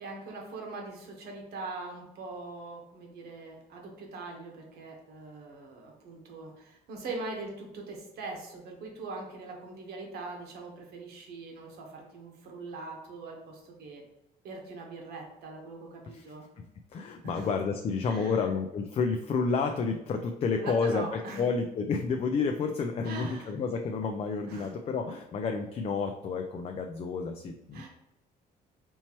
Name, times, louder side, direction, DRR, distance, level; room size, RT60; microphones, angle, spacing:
voice 1, 0.0-14.0 14.4-16.4 17.2-17.5 18.0-18.4 20.6-21.4 23.0-23.5 24.5-24.7 27.7-27.9, right 3 dB, 75° right, 1 dB, 1.2 m, -42 dB
voice 2, 16.6-27.9, left 5 dB, 35° left, 5 dB, 0.3 m, -30 dB
4.4 x 2.9 x 2.9 m, 0.84 s
cardioid pair, 110°, 17 cm